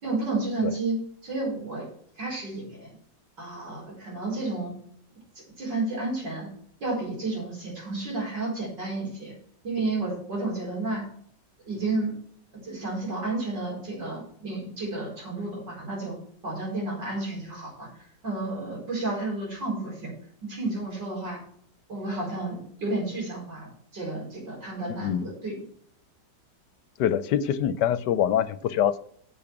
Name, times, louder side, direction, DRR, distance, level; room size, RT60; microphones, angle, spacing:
voice 1, 0.0-1.0 1.2-1.9 2.2-3.0 3.4-4.7 5.6-6.5 6.8-9.3 9.6-11.1 11.7-12.1 12.6-16.2 16.4-17.9 18.2-20.1 20.4-21.4 21.9-25.6, right 2 dB, 75° right, -2 dB, 5.2 m, -31 dB
voice 2, 25.0-25.3 27.0-29.0, left 10 dB, 75° left, 14 dB, 1.2 m, -24 dB
8.7 x 7.3 x 5.9 m, 0.62 s
omnidirectional pair, 1.9 m